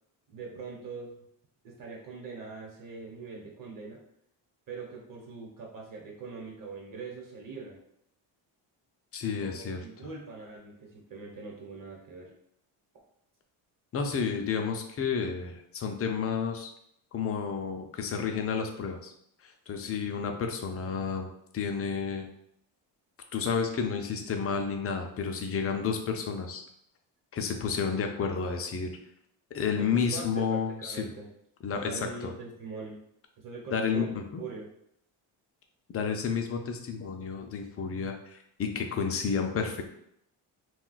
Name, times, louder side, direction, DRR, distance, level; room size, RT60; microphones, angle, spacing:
voice 1, 0.3-1.1 1.6-4.0 4.7-7.8 9.4-12.3 29.7-31.3 31.8-33.0 33.4-34.1 34.4-34.7, right 4 dB, 45° right, -1 dB, 1.0 m, -42 dB
voice 2, 9.1-9.8 13.9-16.7 17.1-19.1 19.4-22.3 23.3-26.6 27.3-28.9 29.5-31.1 31.6-32.3 33.7-34.4 35.9-39.8, left 6 dB, 35° left, 4 dB, 0.4 m, -31 dB
2.3 x 2.3 x 3.9 m, 0.73 s
cardioid pair, 120°, 44 cm